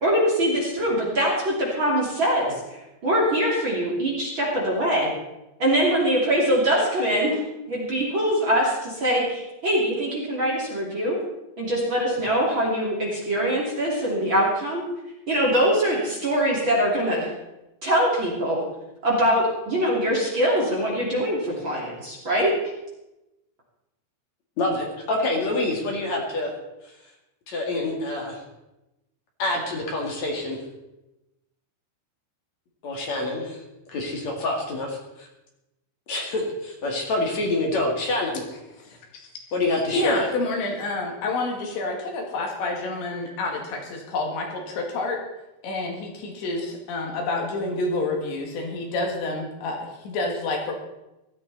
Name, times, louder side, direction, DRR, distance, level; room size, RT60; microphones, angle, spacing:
voice 1, 0.0-5.1 5.6-7.4 7.7-11.2 11.6-14.8 15.3-17.3 17.8-18.6 19.0-22.5, equal, 30° right, -4 dB, 3.0 m, -23 dB
voice 2, 24.6-26.5 27.5-28.4 29.4-30.6 32.8-33.6 33.9-35.3 36.1-38.4 39.5-40.2, left 2 dB, 45° left, 0 dB, 3.0 m, -26 dB
voice 3, 38.9-39.3 39.9-45.2 45.6-50.8, left 2 dB, 80° left, 1 dB, 4.5 m, -28 dB
17.5 x 13.0 x 4.2 m, 0.96 s
omnidirectional pair, 5.1 m